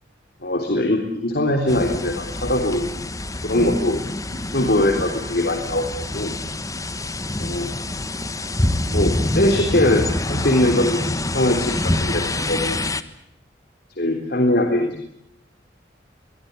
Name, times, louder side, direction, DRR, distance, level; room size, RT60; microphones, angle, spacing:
voice 1, 0.4-2.9 3.4-6.4 7.4-7.7 8.9-12.9 14.0-15.0, left 1 dB, 60° left, 4 dB, 3.6 m, -22 dB
sound 1, 1.7-13.0, left 1 dB, 20° left, 1.3 m, -26 dB
24.0 x 22.0 x 8.3 m, 0.77 s
head